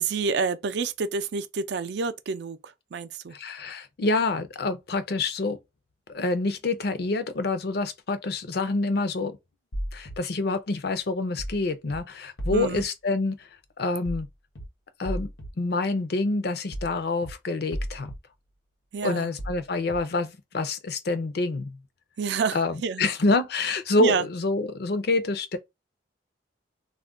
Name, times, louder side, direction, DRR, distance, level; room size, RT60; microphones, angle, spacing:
voice 1, 0.0-3.3 12.5-12.8 18.9-19.3 22.2-23.0 24.0-24.2, right 5 dB, 65° right, 0.4 m, -28 dB
voice 2, 3.3-5.6 6.1-9.4 9.9-13.5 13.8-14.3 15.0-15.3 15.6-18.1 19.0-21.8 22.5-25.6, left 3 dB, 55° left, 0.5 m, -27 dB
sound 1, 9.7-10.2 11.4-11.6 11.9-12.0 12.4-12.8 14.1-14.3 14.6-14.7 15.0-15.5 16.7-16.9 17.2-17.3 17.7-18.2 19.4-19.6 19.9-20.0, equal, 75° left, 1.0 m, -33 dB
2.3 x 2.2 x 3.6 m
head